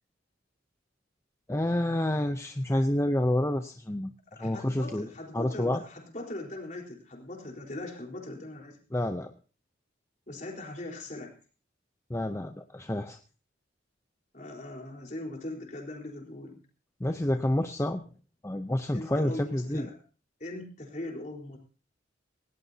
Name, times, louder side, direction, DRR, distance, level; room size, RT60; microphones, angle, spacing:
voice 1, 1.5-4.1 4.4-5.1 5.3-5.8 8.9-9.3 12.1-13.2 17.0-18.0 18.4-19.9, left 1 dB, 15° left, 7 dB, 0.7 m, -28 dB
voice 2, 4.3-8.8 10.3-11.3 14.3-16.6 18.9-20.0 20.4-21.6, left 1 dB, 40° left, 1 dB, 4.1 m, -40 dB
19.0 x 17.5 x 2.8 m, 0.37 s
head